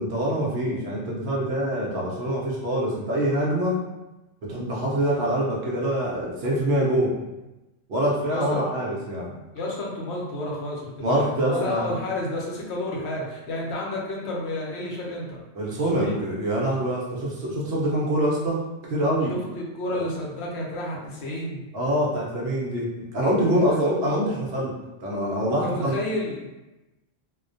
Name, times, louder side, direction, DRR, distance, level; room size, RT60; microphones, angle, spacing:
voice 1, 0.0-3.8 4.4-7.1 7.9-9.4 11.0-12.0 15.5-18.6 18.9-19.3 19.9-20.0 21.7-24.7 25.0-25.9, right 1 dB, 65° right, -5 dB, 0.8 m, -25 dB
voice 2, 8.3-8.6 9.5-15.4 15.9-16.2 19.3-21.6 25.6-26.5, left 1 dB, 70° left, -3 dB, 0.8 m, -31 dB
2.4 x 2.1 x 2.5 m, 1.0 s
omnidirectional pair, 1.2 m